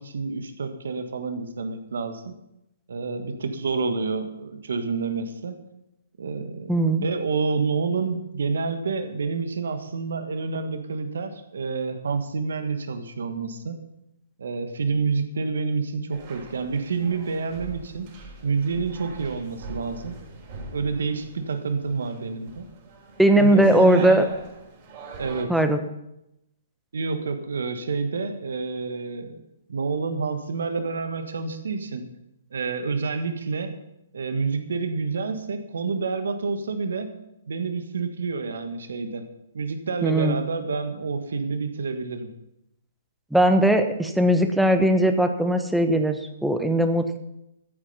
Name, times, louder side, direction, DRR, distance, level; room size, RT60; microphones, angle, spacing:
voice 1, 0.0-2.4 2.9-5.6 6.2-13.8 14.4-18.1 18.4-20.2 20.7-22.7 23.4-24.2 25.2-25.5 26.9-29.4 29.7-32.0 32.5-33.8 34.1-37.1 37.5-39.2 39.5-42.3, right 4 dB, 70° right, 8 dB, 1.6 m, -28 dB
voice 2, 6.7-7.0 23.2-24.2 25.5-25.8 40.0-40.4 43.3-47.2, right 1 dB, ahead, 7 dB, 1.1 m, -19 dB
sound 1, 16.1-25.4, right 3 dB, 40° right, 4.3 m, -42 dB
14.0 x 8.6 x 5.5 m, 0.85 s
figure-of-eight pair, 125°, 0 cm